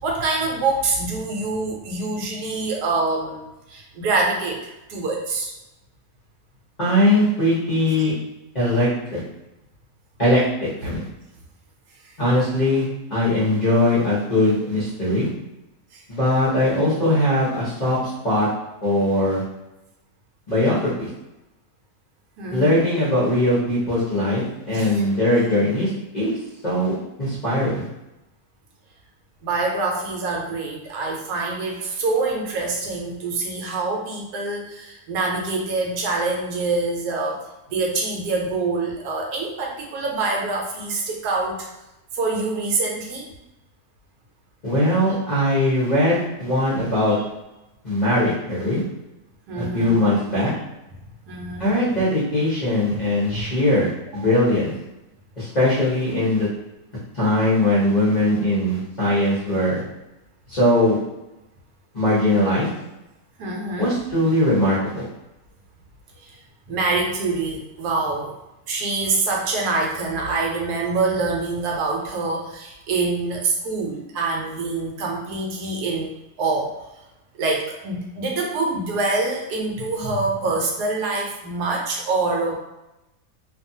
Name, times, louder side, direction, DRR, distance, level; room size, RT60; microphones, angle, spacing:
voice 1, 0.0-3.4 3.7-5.5 15.9-16.0 22.4-22.9 24.7-25.0 29.4-37.4 37.7-41.7 42.1-43.2 49.5-50.0 51.3-51.7 52.9-53.0 53.3-53.4 54.1-54.2 63.4-63.9 66.2-66.3 66.7-68.3 68.7-76.1 76.4-76.7 77.3-82.5, right 3 dB, 80° right, -1 dB, 1.2 m, -25 dB
voice 2, 6.8-8.1 8.5-9.2 10.2-11.0 12.2-15.3 16.1-18.5 18.8-19.4 20.5-21.1 22.5-26.3 26.6-26.9 27.2-27.8 44.6-47.2 47.8-48.8 49.6-50.5 51.6-54.7 55.4-56.5 57.1-59.8 60.5-61.0 61.9-62.7 63.8-65.1, left 1 dB, 35° left, -9 dB, 0.7 m, -20 dB
2.6 x 2.3 x 2.7 m, 0.95 s
omnidirectional pair, 1.7 m